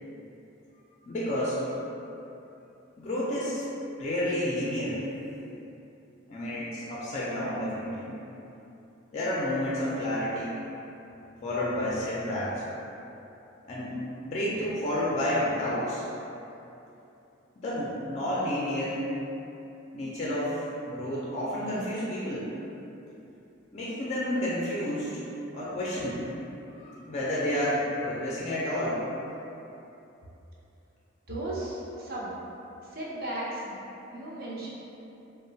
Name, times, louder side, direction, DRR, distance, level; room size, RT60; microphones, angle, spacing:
voice 1, 1.1-1.6 3.0-3.6 4.0-5.0 6.3-8.1 9.1-10.5 11.4-12.6 13.6-14.0 14.2-16.0 17.6-19.0 19.9-22.5 23.7-25.2 25.5-26.3 26.7-29.0, left 1 dB, 35° left, -7 dB, 0.4 m, -30 dB
voice 2, 31.3-32.3 32.9-33.7 34.1-34.7, right 1 dB, 50° right, -6 dB, 0.6 m, -35 dB
2.8 x 2.0 x 2.6 m, 2.9 s
head